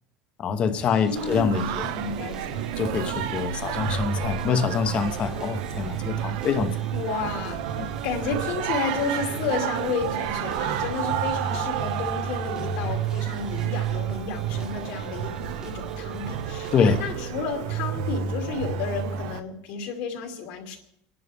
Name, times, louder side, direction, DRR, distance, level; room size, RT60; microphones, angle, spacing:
voice 1, 0.4-1.8 2.8-6.7 16.7-17.0, left 6 dB, 30° left, 0.9 m, -25 dB
sound 1, 0.8-17.1, right 3 dB, 15° right, 1.0 m, -42 dB
voice 2, 1.1-2.7 6.9-20.8, left 5 dB, 60° left, 2.6 m, -32 dB
Singing, 1.2-19.4, right 9 dB, 75° right, 0.8 m, -30 dB
30.0 x 11.0 x 3.5 m
cardioid pair, 170°, 4 cm